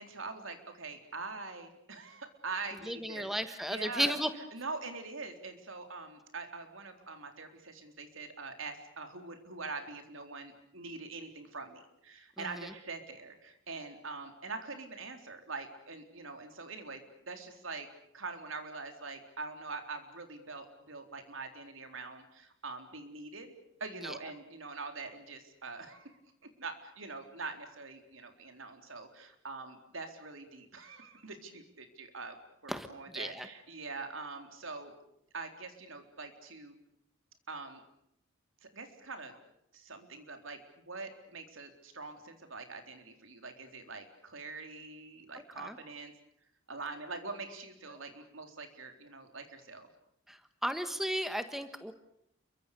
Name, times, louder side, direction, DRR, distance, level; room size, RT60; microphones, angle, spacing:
voice 1, 0.0-4.2 4.5-17.9 18.1-23.5 23.8-26.2 26.6-34.9 35.3-36.8 37.5-37.8 38.6-39.3 39.7-46.1 46.7-49.9, right 3 dB, 80° right, 6 dB, 3.9 m, -44 dB
voice 2, 2.9-4.3 12.4-12.7 24.0-24.2 32.7-32.9 33.1-33.5 45.6-45.8 50.3-51.9, equal, ahead, 9 dB, 1.3 m, -34 dB
29.0 x 23.5 x 6.8 m, 0.74 s
head